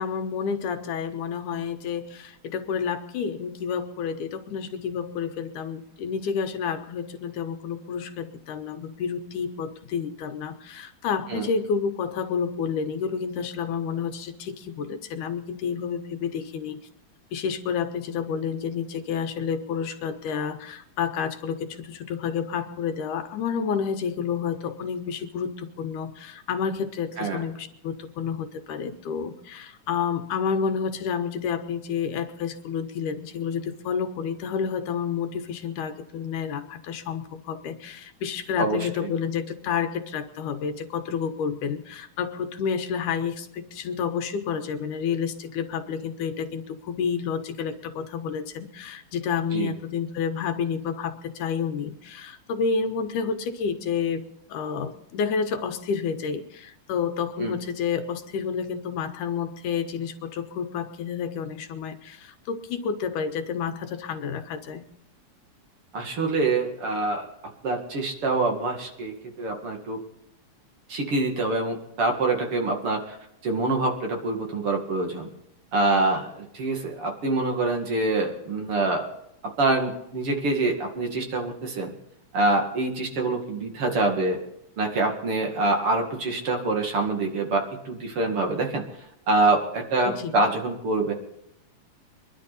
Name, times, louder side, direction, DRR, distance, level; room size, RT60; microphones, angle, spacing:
voice 1, 0.0-16.8 17.3-54.2 54.5-64.8 90.1-90.3, left 6 dB, 85° left, 7 dB, 2.7 m, -30 dB
voice 2, 38.6-39.1 49.5-49.7 57.4-57.5 65.9-67.3 67.6-70.0 70.9-73.2 73.4-75.3 75.7-79.1 79.4-81.9 82.3-84.4 84.8-88.8 89.3-91.1, right 2 dB, 50° right, 3 dB, 2.9 m, -25 dB
24.0 x 11.5 x 4.2 m, 0.80 s
omnidirectional pair, 3.6 m